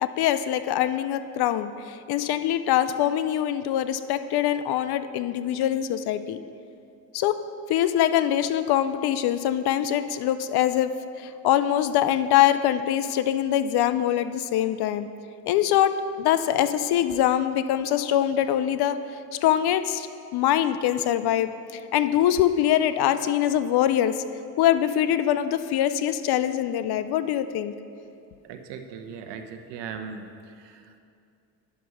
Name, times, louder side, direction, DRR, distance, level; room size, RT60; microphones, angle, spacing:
voice 1, 0.0-6.4 7.1-7.4 7.7-10.9 11.2-15.1 15.5-15.9 16.2-19.0 19.4-20.1 20.3-24.2 24.6-27.7, left 11 dB, 50° left, 12 dB, 0.6 m, -23 dB
voice 2, 28.4-31.0, right 6 dB, 60° right, 6 dB, 1.0 m, -39 dB
10.0 x 6.1 x 5.6 m, 2.4 s
hypercardioid pair, 70°, 49 cm